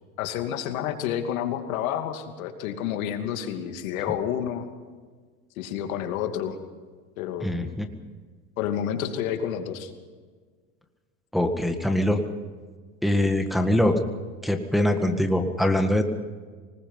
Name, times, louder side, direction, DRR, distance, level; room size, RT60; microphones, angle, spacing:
voice 1, 0.2-4.7 5.6-6.6 7.2-7.5 8.6-9.9, left 9 dB, 80° left, 6 dB, 2.7 m, -29 dB
voice 2, 7.4-7.9 11.3-12.2 13.0-14.0 14.4-16.0, left 1 dB, ahead, 4 dB, 1.8 m, -23 dB
24.5 x 20.0 x 5.7 m, 1.5 s
supercardioid pair, 120°, 41 cm